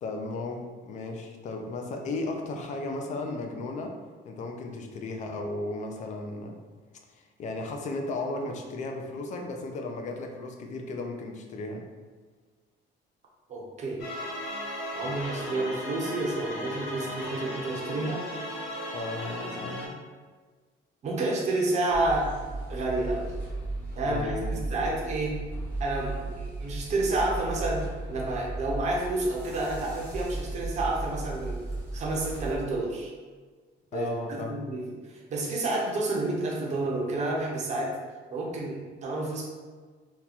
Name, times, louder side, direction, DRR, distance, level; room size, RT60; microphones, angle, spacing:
voice 1, 0.0-4.0 4.2-6.6 7.1-11.9 18.9-20.0 24.0-24.6 33.9-34.7, left 2 dB, 40° left, 3 dB, 0.4 m, -35 dB
voice 2, 13.5-14.1 14.9-18.2 21.0-22.4 22.7-23.3 23.9-25.5 25.8-31.6 31.9-33.1 33.9-38.0 38.3-39.4, right 2 dB, 35° right, -2 dB, 0.6 m, -30 dB
sound 1, 14.0-19.9, left 1 dB, 80° left, 1.1 m, -36 dB
sound 2, 21.9-32.5, right 2 dB, 10° left, 0.8 m, -36 dB
2.9 x 2.3 x 3.9 m, 1.5 s
cardioid pair, 175°, 20 cm